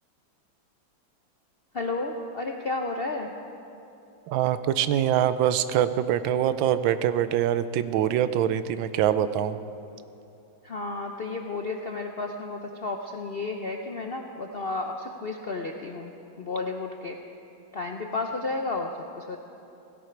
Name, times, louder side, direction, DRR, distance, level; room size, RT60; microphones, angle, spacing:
voice 1, 1.7-3.3 10.6-16.1 16.4-17.2 17.7-19.4, left 3 dB, 65° left, 2 dB, 0.5 m, -32 dB
voice 2, 4.3-9.6, right 10 dB, 90° right, 13 dB, 1.4 m, -24 dB
16.5 x 16.0 x 4.6 m, 2.8 s
omnidirectional pair, 2.1 m